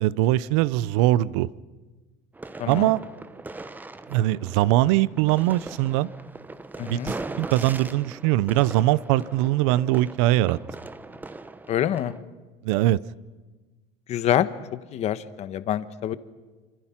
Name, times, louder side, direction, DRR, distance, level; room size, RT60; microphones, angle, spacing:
voice 1, 0.0-1.5 2.7-3.0 4.1-6.1 6.8-10.6 12.6-13.0, right 15 dB, 85° right, 20 dB, 0.7 m, -22 dB
sound 1, 2.3-12.2, right 2 dB, 10° right, 1.0 m, -40 dB
voice 2, 2.6-2.9 6.8-7.1 11.7-12.1 14.1-16.2, left 11 dB, 50° left, 13 dB, 1.2 m, -26 dB
26.5 x 26.0 x 5.9 m, 1.3 s
supercardioid pair, 120°, 15 cm